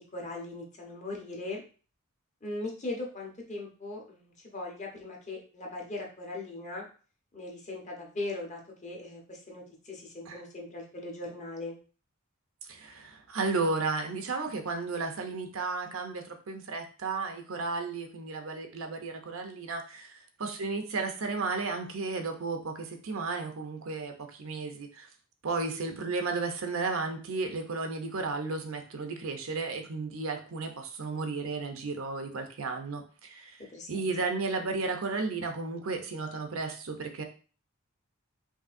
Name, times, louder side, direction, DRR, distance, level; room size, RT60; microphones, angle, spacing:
voice 1, 0.0-1.6 2.4-6.9 7.3-11.8 25.6-25.7 33.7-33.9, left 2 dB, 35° left, -1 dB, 1.0 m, -39 dB
voice 2, 12.7-25.1 25.4-33.6 33.9-37.2, right 3 dB, 70° right, 5 dB, 0.7 m, -33 dB
5.3 x 2.7 x 2.6 m, 0.38 s
head